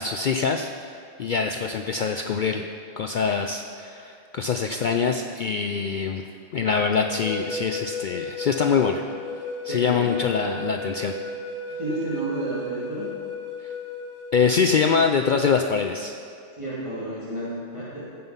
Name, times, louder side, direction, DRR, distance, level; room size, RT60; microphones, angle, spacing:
voice 1, 0.0-2.7 3.0-6.2 6.5-9.0 9.6-11.1 14.3-16.2, left 5 dB, 75° left, 5 dB, 0.4 m, -24 dB
sound 1, 6.9-14.7, left 2 dB, 40° right, 2.0 m, -34 dB
voice 2, 9.7-10.1 11.7-13.1 16.6-18.1, right 1 dB, 25° right, -10 dB, 2.0 m, -31 dB
15.0 x 5.6 x 5.5 m, 2.6 s
omnidirectional pair, 1.4 m